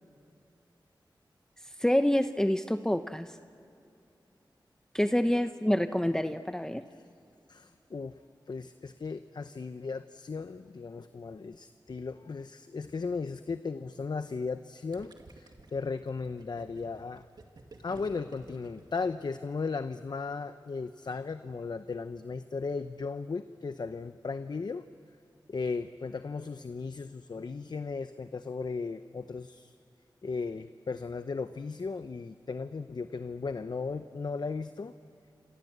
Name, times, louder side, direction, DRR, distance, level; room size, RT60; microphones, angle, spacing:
voice 1, 1.8-3.3 4.9-6.8, left 1 dB, 5° left, 9 dB, 0.8 m, -27 dB
voice 2, 7.5-8.2 8.5-17.3 17.8-24.9 25.5-29.8 30.2-34.9, left 4 dB, 60° left, 11 dB, 0.7 m, -36 dB
Gurgling, 14.9-19.6, right 3 dB, 60° right, 2.4 m, -53 dB
27.5 x 27.0 x 8.0 m, 2.6 s
wide cardioid pair, 60°, 8 cm